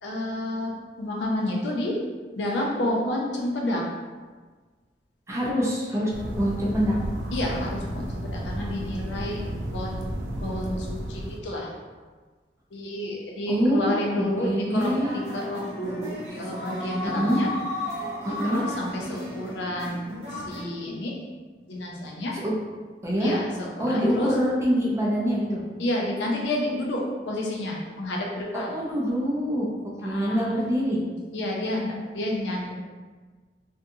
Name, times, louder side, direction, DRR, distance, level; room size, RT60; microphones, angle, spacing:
voice 1, 0.0-0.7 1.0-2.0 2.4-3.9 7.3-9.4 9.7-10.1 10.4-11.7 12.7-14.9 15.3-17.5 18.4-21.2 21.7-22.4 23.2-24.3 25.8-28.7 30.0-30.5 31.3-32.7, left 1 dB, 75° left, -1 dB, 0.5 m, -30 dB
voice 2, 5.3-7.0 13.5-15.1 17.0-17.4 18.2-18.6 22.3-22.5 23.0-23.4 23.8-25.6 28.5-29.7 30.0-31.0, equal, 15° right, -5 dB, 0.5 m, -25 dB
sound 1, 6.1-11.4, right 1 dB, 85° right, 0.4 m, -33 dB
sound 2, 14.7-20.6, left 1 dB, 40° right, 0.9 m, -35 dB
2.6 x 2.3 x 2.7 m, 1.4 s
head